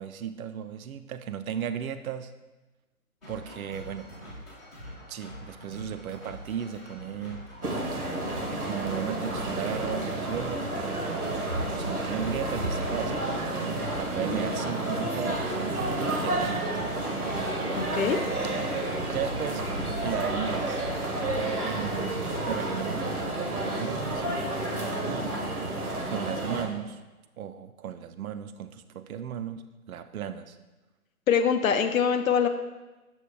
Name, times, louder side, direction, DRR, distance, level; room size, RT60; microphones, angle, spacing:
voice 1, 0.0-2.3 3.3-4.3 5.1-7.5 8.1-11.5 11.8-13.4 14.0-15.8 16.2-16.8 18.7-19.7 20.0-20.8 21.6-24.3 25.1-25.4 26.0-27.0 27.4-30.6, right 9 dB, 70° right, 10 dB, 0.5 m, -36 dB
sound 1, 3.2-23.0, equal, ahead, 0.7 m, -44 dB
sound 2, 7.6-26.7, right 2 dB, 90° right, 1.3 m, -30 dB
voice 2, 17.8-18.2 31.3-32.5, left 7 dB, 70° left, 6 dB, 0.6 m, -24 dB
7.0 x 6.1 x 2.2 m, 1.1 s
figure-of-eight pair, 150°, 44 cm